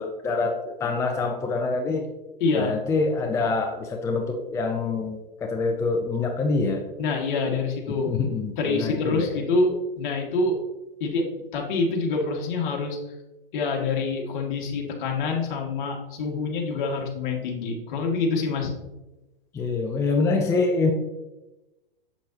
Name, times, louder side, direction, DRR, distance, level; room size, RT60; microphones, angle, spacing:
voice 1, 0.0-2.0 2.5-6.8 8.1-9.3 19.5-20.9, left 3 dB, 10° left, 3 dB, 0.5 m, -25 dB
voice 2, 2.4-2.7 7.0-8.2 8.6-10.6 11.0-11.3 11.5-13.0 13.5-18.7, left 3 dB, 55° left, 0 dB, 1.9 m, -26 dB
7.5 x 7.1 x 2.8 m, 1.0 s
hypercardioid pair, 125°, 29 cm